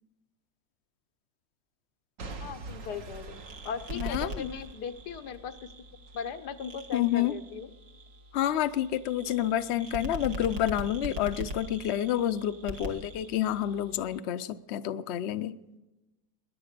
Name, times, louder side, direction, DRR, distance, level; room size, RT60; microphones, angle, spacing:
Boom / Shatter / Crushing, 2.2-6.2 6.7-6.8, right 3 dB, 55° right, 1.4 m, -45 dB
voice 1, 2.4-5.7 6.1-7.7, left 6 dB, 85° left, 8 dB, 1.5 m, -38 dB
sound 1, 2.9-14.2, right 1 dB, 85° right, 2.3 m, -42 dB
voice 2, 3.9-4.5 6.9-7.3 8.3-15.6, left 11 dB, 60° left, 11 dB, 0.7 m, -29 dB
21.0 x 10.0 x 6.7 m, 1.1 s
omnidirectional pair, 1.7 m